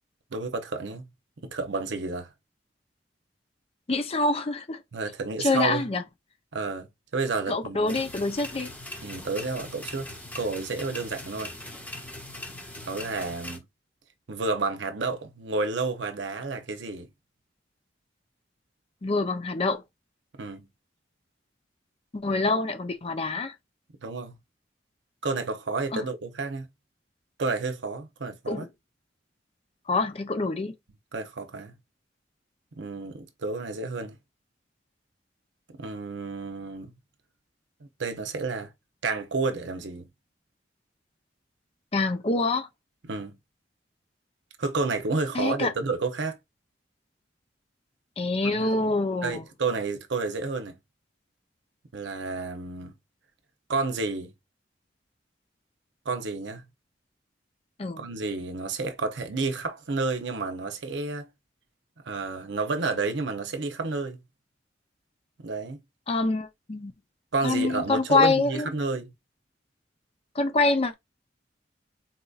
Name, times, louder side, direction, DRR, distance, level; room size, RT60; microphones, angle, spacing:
voice 1, 0.3-1.1 1.4-2.3 4.9-5.9 6.5-8.0 9.0-10.1 10.3-11.5 12.8-13.7 14.3-17.1 20.3-20.7 24.0-24.4 25.2-26.7 27.4-28.7 31.1-31.7 32.7-34.2 35.7-36.9 37.8-38.7 39.0-40.1 43.0-43.4 44.6-46.4 48.4-48.9 49.2-50.8 51.9-52.9 53.7-54.3 56.0-56.6 58.0-61.3 62.0-64.2 65.4-65.8 67.3-69.1, right 3 dB, 75° right, 0.7 m, -30 dB
voice 2, 3.9-4.8 5.4-6.0 7.5-8.7 19.0-19.8 22.1-23.5 25.9-26.0 28.5-28.7 29.9-30.7 41.9-42.7 45.3-45.7 48.2-49.4 57.8-58.0 66.1-66.9 67.4-68.7 70.3-70.9, left 3 dB, 35° left, 0.6 m, -25 dB
sound 1, 7.9-13.6, left 1 dB, 10° left, 0.9 m, -40 dB
4.1 x 2.6 x 2.4 m
head